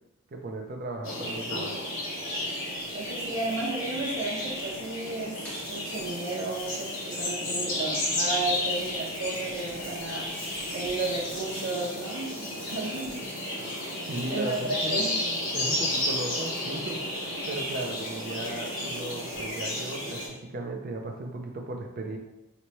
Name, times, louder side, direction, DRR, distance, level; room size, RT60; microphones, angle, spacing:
voice 1, 0.3-1.8 14.1-15.1 15.5-17.0 17.5-22.2, right 2 dB, 45° right, 2 dB, 0.4 m, -36 dB
sound 1, 1.0-20.3, left 1 dB, 65° left, 1.1 m, -32 dB
sound 2, 2.7-20.3, equal, 5° left, 0.6 m, -48 dB
voice 2, 2.9-5.4 5.7-13.5 14.3-14.6 14.9-15.2, right 3 dB, 75° right, -3 dB, 0.9 m, -33 dB
3.1 x 2.2 x 4.0 m, 0.93 s
head